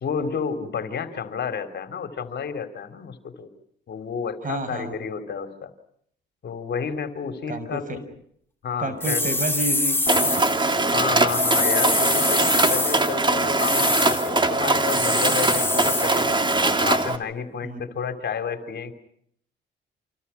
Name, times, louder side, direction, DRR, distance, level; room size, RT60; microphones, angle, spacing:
voice 1, 0.0-3.5 3.9-5.7 6.4-8.0 8.6-9.2 10.9-16.4 16.8-18.9, left 6 dB, 60° left, 9 dB, 3.4 m, -31 dB
voice 2, 4.4-4.9 7.5-8.0 8.8-10.3 17.6-17.8, right 2 dB, 40° right, 11 dB, 6.4 m, -30 dB
sound 1, 9.0-10.6 11.3-13.1 13.6-14.3 14.9-16.2, left 2 dB, 10° left, 2.2 m, -24 dB
Mechanisms, 10.1-17.2, right 2 dB, 25° right, 2.7 m, -22 dB
29.0 x 27.0 x 5.8 m, 0.67 s
cardioid pair, 90°, 20 cm